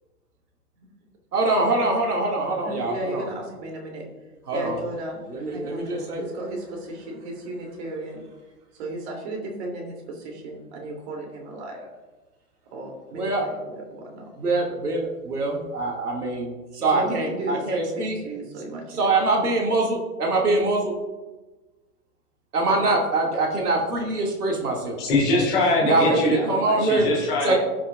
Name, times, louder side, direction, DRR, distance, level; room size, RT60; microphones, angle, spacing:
voice 1, 1.3-3.3 4.5-4.8 5.3-6.3 13.1-13.5 14.4-18.1 19.0-20.9 22.5-25.0 25.9-27.1 27.4-27.5, right 2 dB, 75° right, -1 dB, 2.3 m, -24 dB
voice 2, 2.5-4.0 4.5-8.2 8.8-11.9 12.7-14.3 16.9-19.1 22.7-23.0 25.8-26.8 27.5-27.6, right 1 dB, 45° right, 1 dB, 2.9 m, -34 dB
voice 3, 25.0-26.4 26.8-27.5, left 2 dB, 5° left, -4 dB, 0.3 m, -22 dB
16.5 x 5.7 x 2.4 m, 1.2 s
figure-of-eight pair, 115°, 46 cm